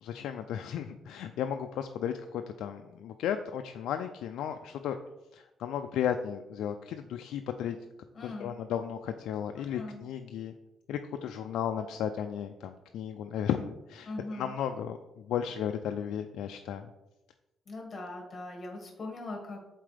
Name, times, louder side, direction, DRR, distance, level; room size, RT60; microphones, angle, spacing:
voice 1, 0.0-5.0 5.3-7.8 8.2-10.5 10.9-16.9, left 9 dB, 80° left, 6 dB, 0.3 m, -34 dB
voice 2, 8.1-8.5 9.5-10.0 14.1-14.5 17.7-19.6, left 2 dB, 35° left, 0 dB, 1.8 m, -41 dB
7.5 x 4.0 x 3.3 m, 0.97 s
cardioid pair, 90°, 0 cm